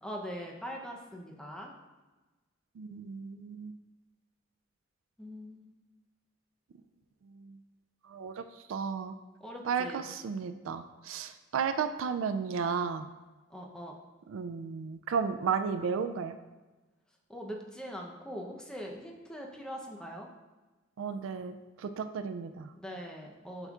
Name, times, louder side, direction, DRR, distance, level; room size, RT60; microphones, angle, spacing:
voice 1, 0.0-1.7 5.2-5.7 9.4-10.1 13.5-14.0 17.3-20.3 22.8-23.7, equal, 5° left, 0 dB, 0.7 m, -42 dB
voice 2, 2.8-3.7 7.3-7.6 8.1-8.4 8.7-9.1 9.6-13.1 14.3-16.4 21.0-22.7, right 6 dB, 85° right, 9 dB, 0.3 m, -33 dB
7.9 x 5.5 x 2.4 m, 1.2 s
head